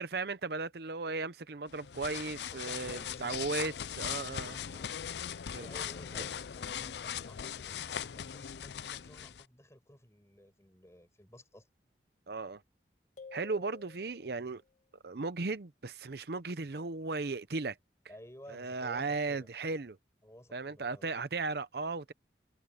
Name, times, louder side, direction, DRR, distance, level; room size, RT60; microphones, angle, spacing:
voice 1, 0.0-4.6 5.5-5.7 12.3-12.6 13.3-14.6 15.0-17.8 18.5-20.0 20.5-22.1, right 3 dB, 60° right, 0.7 m, -36 dB
sound 1, 1.7-9.4, left 9 dB, 70° left, 0.5 m, -40 dB
voice 2, 2.5-3.9 4.1-4.9 5.5-11.7 18.1-19.5 20.2-21.1, equal, 15° left, 6.5 m, -55 dB
sound 2, 13.2-14.7, left 4 dB, 40° left, 1.9 m, -52 dB
head